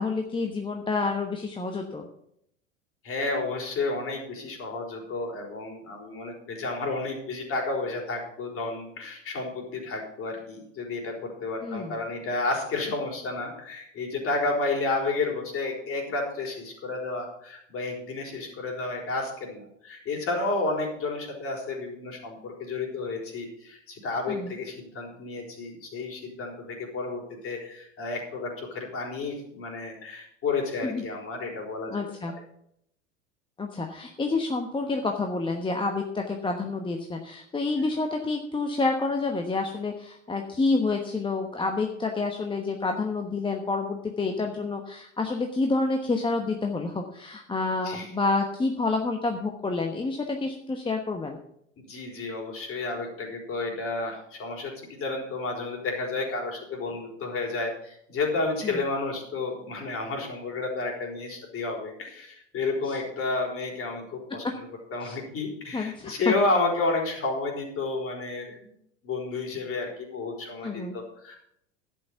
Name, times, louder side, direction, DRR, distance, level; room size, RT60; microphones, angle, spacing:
voice 1, 0.0-2.1 11.6-12.0 24.3-24.6 30.8-31.0 31.9-32.3 33.6-51.4 58.6-58.8 65.0-65.2 65.7-66.1 70.6-70.9, left 3 dB, 15° left, 3 dB, 1.1 m, -28 dB
voice 2, 3.0-32.0 47.8-48.1 51.8-68.7 69.0-71.4, left 3 dB, 35° left, 1 dB, 4.1 m, -31 dB
11.5 x 8.4 x 5.8 m, 0.73 s
figure-of-eight pair, 80°, 37 cm